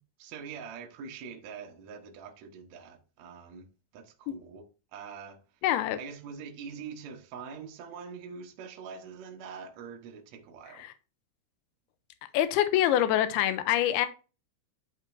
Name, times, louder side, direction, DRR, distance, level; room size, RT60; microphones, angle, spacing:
voice 1, 0.0-3.7 3.9-5.4 6.0-10.9, right 6 dB, 65° right, 1.9 m, -44 dB
voice 2, 5.6-6.0 10.8-10.9 12.3-14.1, left 12 dB, 85° left, 2.7 m, -25 dB
11.0 x 5.1 x 2.6 m
omnidirectional pair, 4.5 m